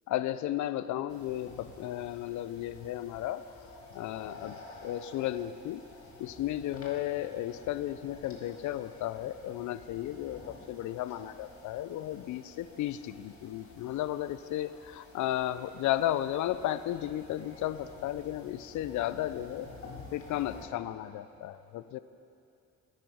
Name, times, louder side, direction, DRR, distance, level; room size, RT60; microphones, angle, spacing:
voice 1, 0.1-3.4 3.9-4.6 4.8-5.8 6.2-19.7 20.1-22.0, left 13 dB, 75° left, 14 dB, 0.5 m, -34 dB
sound 1, 1.1-20.7, left 3 dB, 50° left, 1.7 m, -52 dB
10.5 x 9.4 x 4.9 m, 2.6 s
cardioid pair, 90°, 30 cm